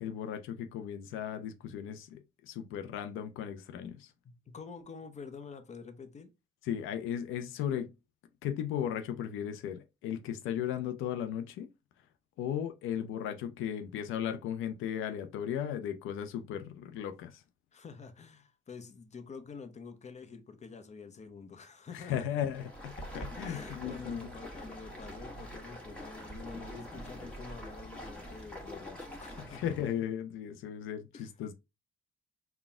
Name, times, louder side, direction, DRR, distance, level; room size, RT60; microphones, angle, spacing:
voice 1, 0.0-4.1 6.6-8.0 8.4-11.7 12.4-17.4 21.9-24.3 29.5-31.5, left 9 dB, 90° left, 0.5 m, -36 dB
voice 2, 4.2-6.3 17.7-22.4 23.4-29.7 31.1-31.3, left 5 dB, 35° left, 0.8 m, -47 dB
Stream, 22.4-30.0, equal, 5° left, 1.4 m, -45 dB
4.0 x 2.3 x 3.5 m
cardioid pair, 90°, 20 cm